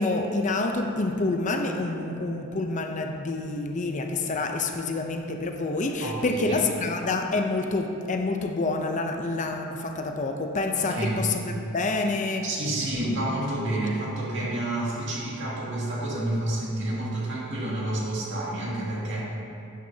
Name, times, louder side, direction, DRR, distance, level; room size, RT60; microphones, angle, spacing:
voice 1, 0.0-12.5, left 3 dB, 35° left, 4 dB, 0.6 m, -27 dB
voice 2, 6.0-6.6 10.8-11.2 12.4-19.2, right 1 dB, 60° right, -5 dB, 2.1 m, -29 dB
11.5 x 9.3 x 2.8 m, 2.6 s
head